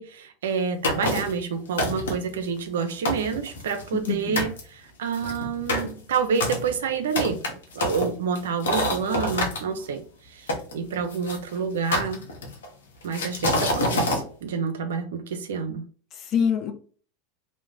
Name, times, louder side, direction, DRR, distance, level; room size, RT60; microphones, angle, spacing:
voice 1, 0.0-7.4 7.7-10.0 10.3-12.2 13.0-15.8, right 6 dB, 80° right, 8 dB, 0.4 m, -28 dB
sound 1, 0.8-1.4 1.8-2.3 2.8-2.9 3.1-4.1 4.4-4.6 5.1-9.6 10.5-11.4 11.9-12.7 13.1-14.2, left 1 dB, 85° left, 0.7 m, -26 dB
voice 2, 4.0-4.5 13.2-13.3 16.2-16.7, left 7 dB, 45° left, 6 dB, 0.5 m, -25 dB
2.4 x 2.1 x 3.0 m, 0.42 s
hypercardioid pair, 100°, 0 cm